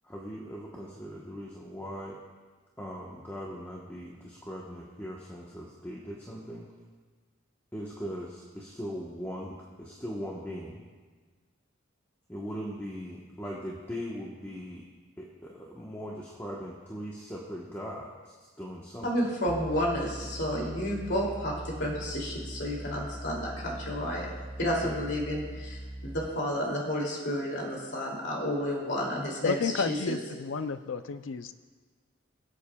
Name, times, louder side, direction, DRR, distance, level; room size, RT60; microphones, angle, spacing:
voice 1, 0.0-2.2 2.8-6.7 7.7-10.8 12.3-14.8 15.2-19.1 24.8-25.0, equal, 10° left, -4 dB, 1.1 m, -39 dB
voice 2, 19.0-24.3 24.6-30.2, equal, 60° left, -3 dB, 2.6 m, -31 dB
sound 1, 19.5-26.3, right 1 dB, 10° right, 0.4 m, -41 dB
voice 3, 29.4-31.5, left 5 dB, 80° left, 11 dB, 0.5 m, -31 dB
24.5 x 8.3 x 2.3 m, 1.4 s
head